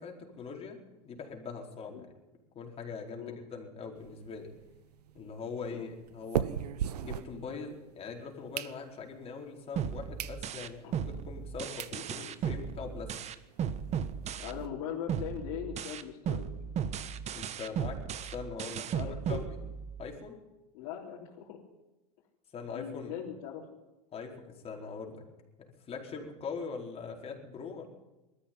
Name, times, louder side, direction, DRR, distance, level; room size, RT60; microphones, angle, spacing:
voice 1, 0.0-2.1 2.5-4.5 5.1-6.5 7.0-13.2 17.3-19.6 20.0-20.4 22.5-23.1 24.1-25.2 25.6-27.9, left 5 dB, 30° left, 1 dB, 4.7 m, -42 dB
sound 1, 4.0-7.9 8.3-9.2 9.7-9.8 10.2-10.4 10.8-10.9 11.5-11.6 11.8-12.0 12.4-12.5 12.7-12.8 13.1-13.2 13.5-14.7, right 10 dB, 80° right, 1.0 m, -38 dB
sound 2, 9.8-14.8 15.1-20.1, right 8 dB, 35° right, 1.3 m, -36 dB
voice 2, 14.4-16.5 18.9-19.5 20.0-20.1 20.7-21.6 22.7-23.6, left 9 dB, 60° left, -3 dB, 3.6 m, -40 dB
20.5 x 13.5 x 9.5 m, 1.1 s
hypercardioid pair, 100°, 20 cm